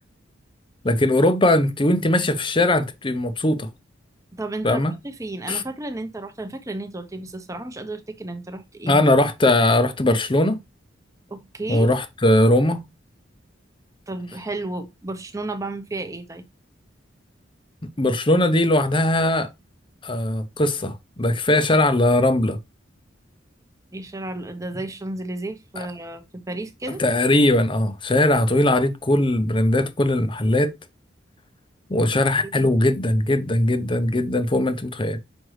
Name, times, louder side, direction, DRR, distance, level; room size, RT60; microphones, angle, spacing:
voice 1, 0.8-3.7 4.6-4.9 5.5-5.6 8.9-10.6 11.7-12.8 18.0-19.5 20.0-22.6 27.0-30.7 31.9-35.2, left 1 dB, 25° left, 0.7 m, -20 dB
voice 2, 4.3-9.0 11.3-11.9 14.1-16.4 23.9-27.0 32.0-32.1 32.5-32.7, right 2 dB, 15° right, 0.9 m, -33 dB
6.2 x 5.2 x 3.2 m
head